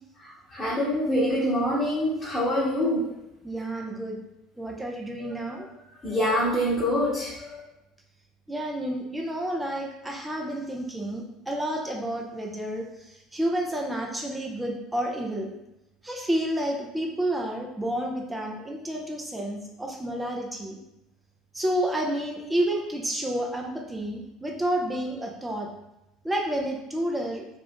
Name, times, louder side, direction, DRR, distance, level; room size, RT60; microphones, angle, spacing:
voice 1, 0.5-3.0 6.0-7.6, equal, 15° left, -9 dB, 1.2 m, -25 dB
voice 2, 3.4-4.2 4.6-5.7 8.5-15.5 16.0-20.8 21.5-25.7 26.2-27.5, right 1 dB, 10° right, 0 dB, 0.6 m, -30 dB
2.5 x 2.4 x 3.5 m, 0.91 s
hypercardioid pair, 75°, 0 cm